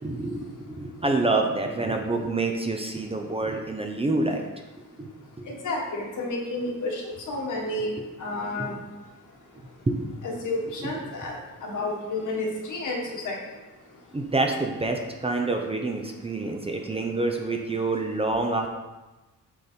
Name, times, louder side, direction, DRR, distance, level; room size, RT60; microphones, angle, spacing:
voice 1, 0.0-0.5 0.8-4.4 5.0-5.1 5.4-5.5 8.6-8.7 9.9-10.0 10.8-10.9 14.1-18.7, right 2 dB, 20° right, 2 dB, 0.6 m, -27 dB
voice 2, 5.5-7.9 8.2-8.7 10.2-11.4 11.6-13.4, left 2 dB, 70° left, -1 dB, 1.6 m, -30 dB
8.2 x 4.1 x 4.4 m, 1.1 s
wide cardioid pair, 160°, 32 cm